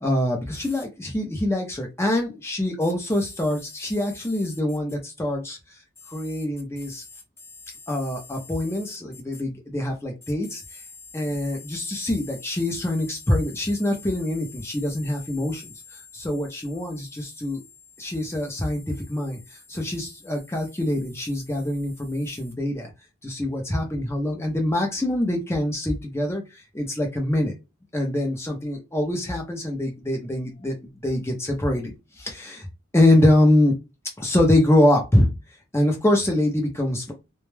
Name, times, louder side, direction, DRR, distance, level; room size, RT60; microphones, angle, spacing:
voice 1, 0.0-5.6 6.1-7.0 7.9-10.6 11.1-15.7 16.1-17.6 18.0-19.4 19.7-22.9 23.2-26.4 26.7-27.5 27.9-30.8 31.0-32.7 32.9-33.7 34.2-35.3 35.7-37.1, left 1 dB, 15° left, 0.5 m, -24 dB
2.1 x 2.0 x 3.1 m
head